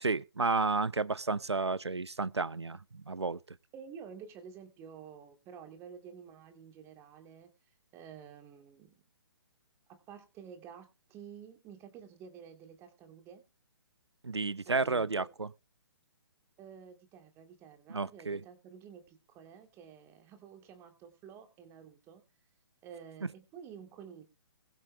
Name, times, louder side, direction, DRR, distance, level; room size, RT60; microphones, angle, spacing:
voice 1, 0.0-2.8 3.1-3.4 14.2-15.5 17.9-18.4, right 3 dB, 85° right, 0.6 m, -31 dB
voice 2, 3.7-7.5 7.9-8.9 9.9-13.4 14.7-15.3 16.6-22.2 22.8-24.2, right 7 dB, 20° right, 2.3 m, -50 dB
21.0 x 7.7 x 3.3 m
figure-of-eight pair, 130°, 14 cm